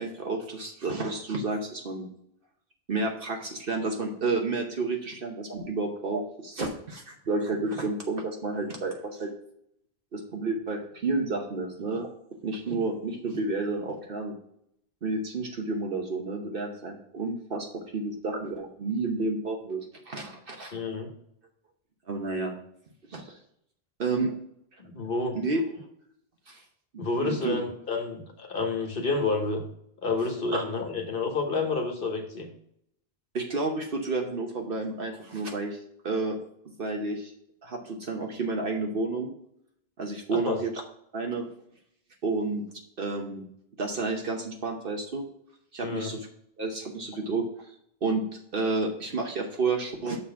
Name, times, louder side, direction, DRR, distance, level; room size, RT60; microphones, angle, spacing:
voice 1, 0.0-2.1 2.9-9.3 10.1-12.1 12.4-14.3 15.0-17.7 17.9-20.7 22.1-22.5 23.1-23.4 24.0-24.3 25.3-25.6 26.5-26.6 27.2-27.6 30.5-30.6 33.3-35.8 36.0-36.4 36.8-37.3 37.6-39.3 40.0-40.7 41.1-41.5 42.2-42.6 43.0-43.4 43.8-45.2 45.7-46.3 46.6-47.5 48.0-48.2 48.5-50.2, right 3 dB, 60° right, 2 dB, 1.1 m, -30 dB
voice 2, 20.7-21.1 24.8-25.4 27.0-29.6 30.0-32.5 40.4-40.6 45.8-46.2, left 3 dB, 60° left, 3 dB, 1.3 m, -29 dB
6.7 x 3.9 x 5.7 m, 0.72 s
omnidirectional pair, 1.0 m